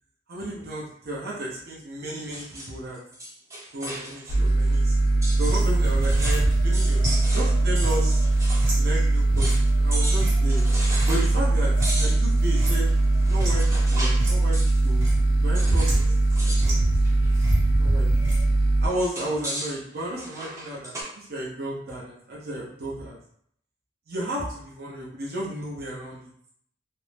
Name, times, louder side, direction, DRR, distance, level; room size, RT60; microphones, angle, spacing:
voice 1, 0.3-3.0 3.7-5.0 5.4-8.2 8.7-10.6 11.1-12.9 13.3-13.6 13.9-14.6 14.8-15.0 15.4-16.9 17.2-17.5 17.8-18.2 18.8-23.2 24.1-26.2, right 1 dB, 55° right, -5 dB, 0.6 m, -33 dB
sound 1, 2.2-4.4 4.7-4.8 5.2-8.7 9.0-9.1 9.4-9.7 9.9-11.4 11.8-14.3 14.5-14.9 15.5-16.1 16.3-16.7 17.0-17.4 18.9-21.0, right 1 dB, 15° right, 0.6 m, -36 dB
sound 2, 4.3-18.9, right 2 dB, 55° left, 0.4 m, -21 dB
sound 3, 5.3-12.1 12.4-13.7 14.1-14.4 14.7-15.2 15.8-16.3 16.6-18.4, equal, 80° right, 1.1 m, -32 dB
2.5 x 2.0 x 3.2 m, 0.67 s
head